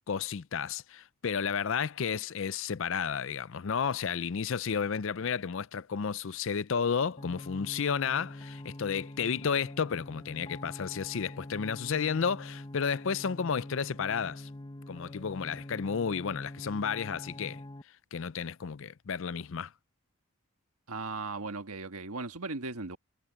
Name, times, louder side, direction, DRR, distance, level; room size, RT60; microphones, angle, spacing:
voice 1, 0.1-14.5 14.9-17.6 18.1-19.7, left 6 dB, 60° left, 0.5 m, -32 dB
sound 1, 7.2-17.8, left 1 dB, 25° left, 1.2 m, -45 dB
voice 2, 20.9-23.0, right 3 dB, 80° right, 1.6 m, -37 dB
head